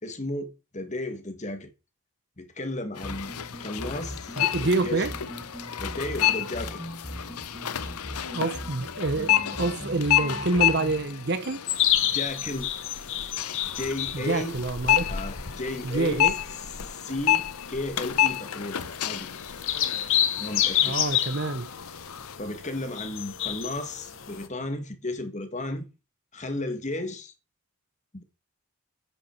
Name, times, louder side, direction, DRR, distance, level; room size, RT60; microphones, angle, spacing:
voice 1, 0.0-1.7 2.4-5.1 5.8-6.8 12.0-12.7 13.6-14.6 15.1-16.3 17.0-19.3 20.4-21.0 22.4-25.9 26.3-27.3 28.1-28.2, left 1 dB, 30° left, 1.7 m, -34 dB
sound 1, 2.9-22.4, left 11 dB, 90° left, 0.8 m, -30 dB
sound 2, 3.0-11.0, equal, 5° left, 1.6 m, -40 dB
voice 2, 4.4-5.1 8.3-11.6 14.1-15.0 15.8-16.3 20.8-21.7, right 3 dB, 50° right, 0.9 m, -27 dB
sound 3, 11.7-24.5, left 11 dB, 60° left, 1.1 m, -30 dB
10.0 x 8.5 x 4.5 m
head